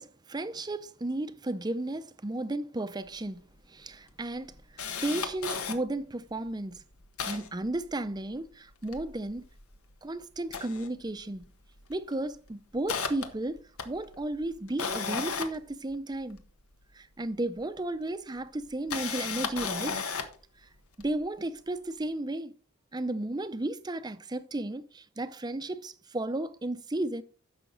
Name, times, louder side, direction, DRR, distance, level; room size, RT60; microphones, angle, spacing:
voice 1, 0.0-4.5 5.0-6.8 7.3-9.5 10.0-11.5 11.9-16.4 16.9-20.0 20.6-20.7 21.0-22.5 22.9-27.2, right 2 dB, 20° right, 0.6 m, -34 dB
Camera, 3.2-3.3 3.5-3.6 4.1-5.8 6.4-6.5 6.7-8.4 8.7-9.9 10.4-11.5 11.8-12.1 12.5-16.5 17.6-17.7 18.6-20.4 21.0-21.1, left 5 dB, 85° left, 1.4 m, -35 dB
11.0 x 7.0 x 3.9 m
head